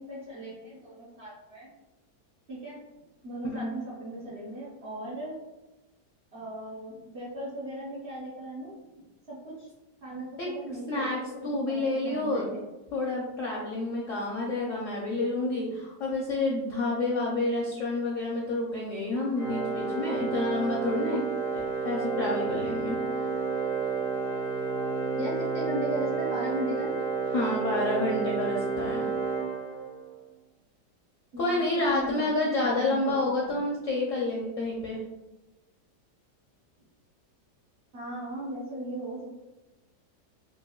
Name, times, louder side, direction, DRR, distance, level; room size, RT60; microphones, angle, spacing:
voice 1, 0.0-1.7 2.5-2.8 3.2-5.4 6.3-8.8 9.3-9.7 10.0-12.6 15.7-15.8 25.1-27.0 31.3-33.6 37.9-39.3, right 1 dB, 45° right, -6 dB, 0.8 m, -37 dB
voice 2, 10.4-11.2 11.4-12.5 12.9-21.3 21.5-23.0 27.3-29.1 31.4-35.0, left 2 dB, 70° left, -3 dB, 0.7 m, -29 dB
Organ, 19.3-30.2, right 4 dB, 65° right, 1.9 m, -30 dB
4.4 x 2.3 x 2.3 m, 1.0 s
omnidirectional pair, 1.9 m